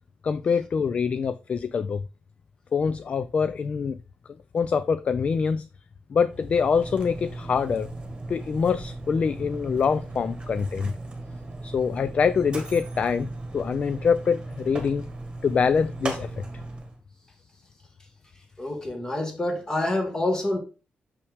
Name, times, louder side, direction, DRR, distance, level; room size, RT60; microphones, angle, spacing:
voice 1, 0.2-2.0 2.7-4.0 4.5-5.7 6.1-7.9 8.3-10.9 11.6-15.1 15.4-16.4, left 6 dB, 40° left, 0.3 m, -25 dB
Mechanisms, 6.2-17.0, right 2 dB, 25° right, 1.5 m, -37 dB
voice 2, 18.6-20.6, left 1 dB, 20° left, 1.5 m, -27 dB
6.5 x 5.7 x 3.4 m
wide cardioid pair, 175°, 3 cm